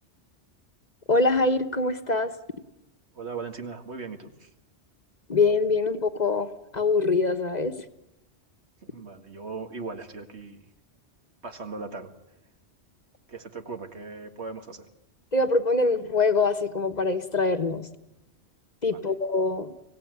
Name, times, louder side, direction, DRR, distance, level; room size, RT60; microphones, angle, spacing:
voice 1, 1.1-2.3 5.3-7.7 15.3-17.9 18.8-19.7, left 3 dB, 40° left, 9 dB, 1.3 m, -24 dB
voice 2, 3.1-4.5 8.8-10.6 11.4-12.1 13.3-14.9 18.9-19.1, right 4 dB, 75° right, 6 dB, 2.3 m, -38 dB
25.0 x 17.5 x 9.5 m, 0.91 s
omnidirectional pair, 1.2 m